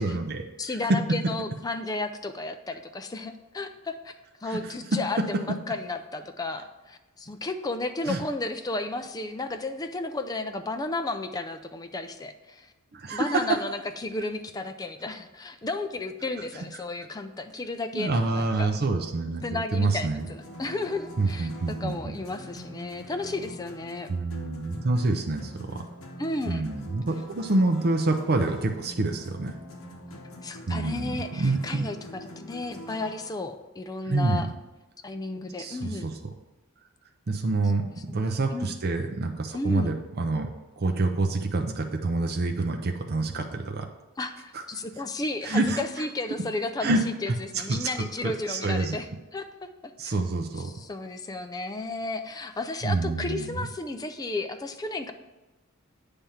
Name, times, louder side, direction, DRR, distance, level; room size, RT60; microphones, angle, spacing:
voice 1, 0.0-0.8 4.4-4.7 8.1-8.2 12.9-13.4 17.9-20.3 21.2-22.1 24.1-25.8 26.5-29.5 30.7-31.9 34.1-34.4 35.6-36.1 37.3-37.8 38.1-40.5 40.8-43.9 44.5-44.6 45.4-45.8 46.8-47.0 47.3-49.0 50.0-50.7 52.8-53.6, right 2 dB, 45° right, 3 dB, 0.5 m, -27 dB
voice 2, 0.6-4.2 4.4-12.7 13.1-18.7 19.4-24.1 26.2-26.6 30.1-34.5 35.0-36.1 37.8-38.7 39.5-39.9 44.2-50.1 50.6-55.1, left 2 dB, 15° left, 7 dB, 0.4 m, -33 dB
sound 1, 20.2-33.3, equal, 65° left, 1.0 m, -44 dB
8.8 x 3.5 x 5.6 m, 1.1 s
head